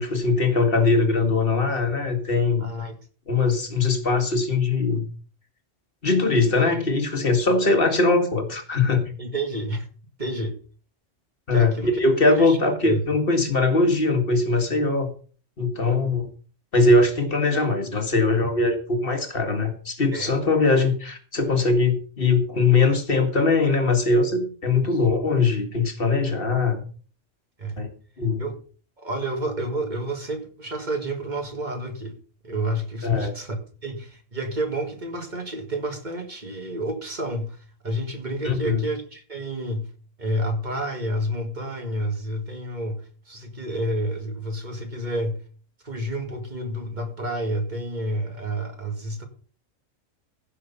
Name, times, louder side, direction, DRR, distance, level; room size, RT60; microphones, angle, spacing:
voice 1, 0.0-2.7 3.3-5.1 6.0-9.1 11.5-15.1 15.6-16.3 16.7-26.8 27.8-27.9 28.2-28.4 33.0-33.3 38.4-38.8, left 3 dB, 45° left, 7 dB, 2.1 m, -21 dB
voice 2, 2.6-3.0 9.2-9.9 10.2-10.6 11.5-13.1 20.1-20.3 24.8-25.0 27.6-27.9 28.4-28.6 29.0-32.2 32.4-37.6 37.8-39.9 40.2-45.4 45.8-49.2, right 1 dB, 35° right, 6 dB, 2.3 m, -30 dB
15.5 x 6.8 x 5.6 m, 0.40 s
omnidirectional pair, 1.3 m